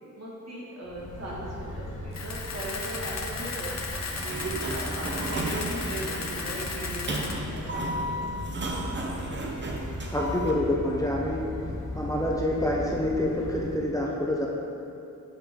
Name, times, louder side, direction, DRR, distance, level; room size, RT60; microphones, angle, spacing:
voice 1, 0.2-3.7 4.2-8.3, right 1 dB, 55° right, -6 dB, 1.7 m, -38 dB
sound 1, 0.8-13.8, left 1 dB, 75° left, 1.1 m, -37 dB
Camera, 2.1-7.3, left 4 dB, 60° left, 0.6 m, -35 dB
Sliding door, 4.0-10.5, right 2 dB, 35° right, 0.7 m, -34 dB
voice 2, 10.1-11.5 11.9-14.5, left 1 dB, 10° left, -3 dB, 0.6 m, -27 dB
8.1 x 5.1 x 3.7 m, 2.7 s
wide cardioid pair, 135°, 31 cm